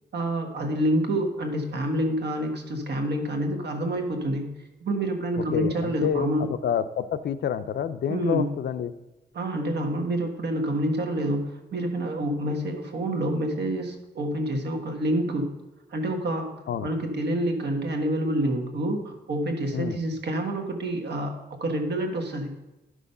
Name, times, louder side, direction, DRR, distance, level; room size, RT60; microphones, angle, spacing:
voice 1, 0.1-4.5 4.8-6.5 8.1-8.6 9.3-15.5 15.9-21.3 21.6-22.5, right 1 dB, 70° right, 4 dB, 1.5 m, -27 dB
voice 2, 5.4-8.9 16.7-16.9 19.7-20.0, left 8 dB, 75° left, 12 dB, 0.5 m, -28 dB
11.0 x 6.2 x 5.5 m, 1.0 s
wide cardioid pair, 115°, 18 cm